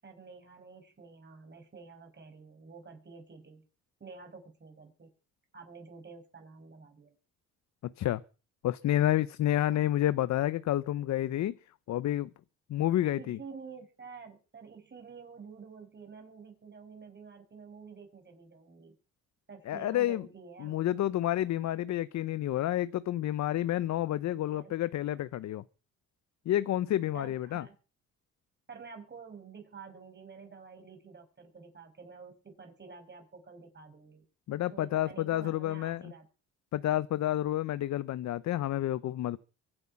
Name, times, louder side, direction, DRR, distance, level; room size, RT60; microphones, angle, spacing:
voice 1, 0.0-3.6 4.0-5.1 5.5-7.1 9.7-9.8 13.1-18.9 19.5-20.8 24.5-24.7 27.1-27.7 28.7-34.2 34.7-36.3, right 5 dB, 35° right, 6.3 m, -49 dB
voice 2, 8.6-11.6 11.9-12.3 12.7-13.4 19.7-20.2 20.6-25.6 26.5-27.6 34.5-36.1 36.7-39.4, left 13 dB, 65° left, 0.7 m, -29 dB
24.0 x 8.1 x 5.8 m
cardioid pair, 90°, 30 cm